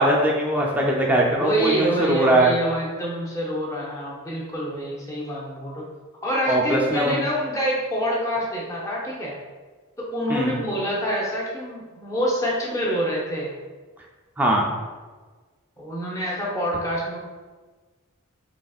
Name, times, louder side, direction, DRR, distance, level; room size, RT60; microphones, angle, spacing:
voice 1, 0.0-2.5 6.5-7.3 10.3-10.6 14.4-14.8, right 1 dB, 5° right, -2 dB, 0.4 m, -21 dB
voice 2, 1.3-5.9 6.2-9.3 10.0-13.5 15.8-17.2, equal, 15° left, -4 dB, 0.7 m, -26 dB
4.0 x 3.3 x 2.3 m, 1.3 s
head